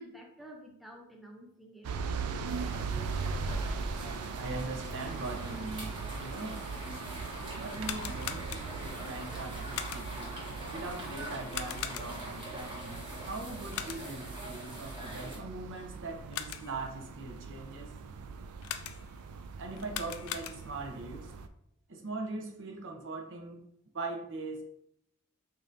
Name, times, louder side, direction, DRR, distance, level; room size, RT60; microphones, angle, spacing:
voice 1, 0.0-1.9, right 1 dB, ahead, 0 dB, 0.4 m, -50 dB
sound 1, 1.8-21.5, right 4 dB, 80° right, 0.3 m, -40 dB
sound 2, 2.5-15.4, right 1 dB, 20° right, 1.1 m, -44 dB
voice 2, 4.4-10.4 10.7-17.9 19.6-21.3 21.9-23.6 23.9-24.6, right 3 dB, 60° right, 2 dB, 0.7 m, -41 dB
sound 3, 7.7-9.0 9.7-10.3 11.5-12.4 13.7-14.3 16.1-16.9 18.6-19.3 19.8-20.9, left 10 dB, 70° left, 0.3 m, -41 dB
5.2 x 2.7 x 2.6 m, 0.72 s
head